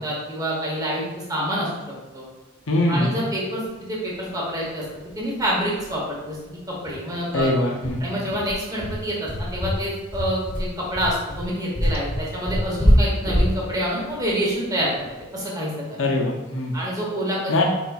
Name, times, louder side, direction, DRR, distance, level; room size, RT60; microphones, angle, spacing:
voice 1, 0.0-1.7 2.1-2.2 2.9-3.6 3.9-4.8 5.2-6.4 6.7-7.5 8.0-16.0 16.7-17.7, equal, 20° right, -5 dB, 1.0 m, -27 dB
voice 2, 2.7-3.3 7.3-8.2 16.0-16.7 17.5-17.7, left 1 dB, 75° left, 0 dB, 0.7 m, -22 dB
sound 1, 4.9-5.0 5.3-5.4 5.8-5.9 6.3-6.4 6.9-15.3, equal, 10° left, 1.2 m, -24 dB
4.6 x 4.0 x 2.3 m, 1.2 s
head